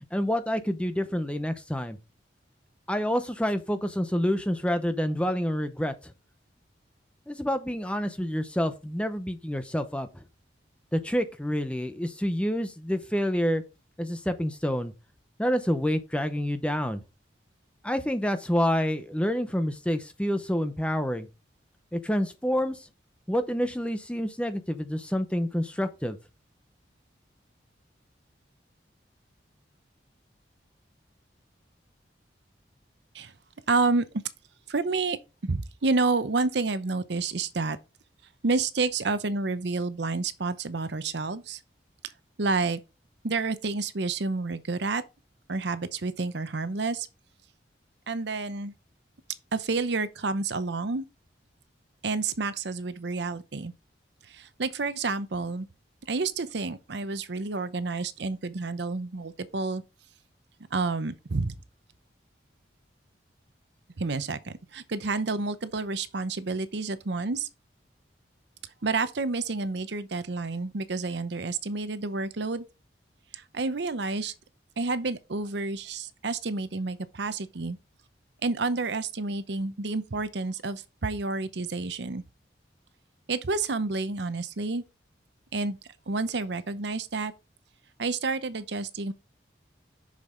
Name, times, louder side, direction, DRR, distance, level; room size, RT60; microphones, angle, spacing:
voice 1, 0.1-2.0 2.9-5.9 7.3-10.2 10.9-13.6 14.0-14.9 15.4-17.0 17.8-21.3 21.9-22.8 23.3-26.2, equal, 5° left, 0.8 m, -28 dB
voice 2, 33.7-34.1 34.7-35.2 35.4-37.8 38.4-41.6 42.4-42.8 43.2-45.0 45.5-47.1 48.1-48.7 49.5-51.1 52.0-53.7 54.3-55.7 56.1-59.8 60.7-61.6 64.0-67.5 68.8-72.6 73.3-74.3 74.8-77.8 78.4-82.2 83.3-84.8 85.5-85.8 86.1-87.3 88.0-89.1, right 3 dB, 65° right, 0.7 m, -29 dB
6.9 x 6.6 x 3.8 m
head